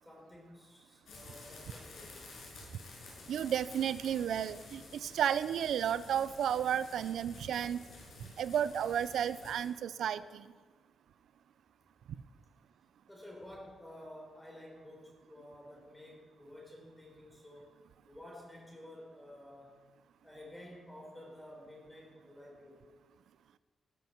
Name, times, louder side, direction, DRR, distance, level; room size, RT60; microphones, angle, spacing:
voice 1, 0.0-2.2 13.1-17.8 18.1-19.8 20.2-22.8, left 1 dB, 10° left, -1 dB, 4.4 m, -52 dB
sound 1, 1.1-9.7, left 3 dB, 80° left, 5.8 m, -52 dB
voice 2, 3.3-7.8 8.4-10.5, right 9 dB, 80° right, 15 dB, 0.6 m, -32 dB
19.0 x 11.5 x 4.6 m, 1.5 s
wide cardioid pair, 145°, 0 cm